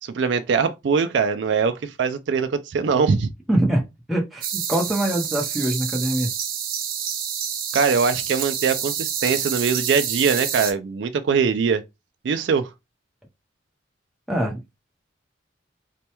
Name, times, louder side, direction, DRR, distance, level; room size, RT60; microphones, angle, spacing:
voice 1, 0.0-3.3 7.7-11.8 12.2-12.7, right 5 dB, 70° right, 0.4 m, -22 dB
voice 2, 3.5-3.8 4.1-6.3 14.3-14.6, right 1 dB, ahead, 0.7 m, -23 dB
sound 1, 4.4-10.7, right 8 dB, 50° right, 0.8 m, -28 dB
4.2 x 2.2 x 2.9 m
head